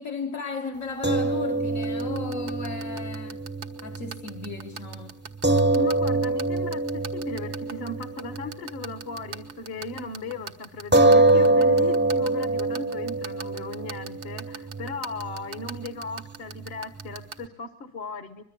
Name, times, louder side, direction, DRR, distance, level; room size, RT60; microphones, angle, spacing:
voice 1, 0.0-3.4 3.8-5.2, left 4 dB, 55° left, 1.7 m, -35 dB
sound 1, 1.0-9.5 9.9-10.0 10.9-17.5, right 2 dB, 10° right, 0.9 m, -25 dB
sound 2, 1.8-17.4, right 7 dB, 85° right, 1.9 m, -37 dB
voice 2, 5.8-18.4, left 4 dB, 40° left, 1.4 m, -37 dB
24.5 x 22.0 x 8.4 m
omnidirectional pair, 1.7 m